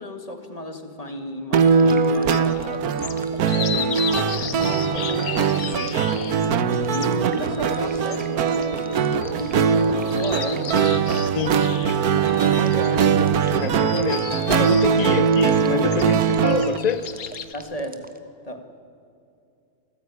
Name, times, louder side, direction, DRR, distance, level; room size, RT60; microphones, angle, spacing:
voice 1, 0.0-2.9 3.4-9.1 9.3-11.1 12.1-13.1 17.5-18.1 18.4-18.7, equal, 25° left, 7 dB, 2.0 m, -34 dB
sound 1, 1.5-16.8, right 6 dB, 80° right, 1.4 m, -21 dB
sound 2, 1.6-18.2, right 1 dB, 5° right, 1.2 m, -40 dB
sound 3, 2.3-17.5, left 8 dB, 70° left, 1.6 m, -36 dB
voice 2, 13.6-17.1, left 6 dB, 45° left, 11 dB, 0.5 m, -27 dB
28.0 x 15.0 x 9.7 m, 2.6 s
omnidirectional pair, 1.6 m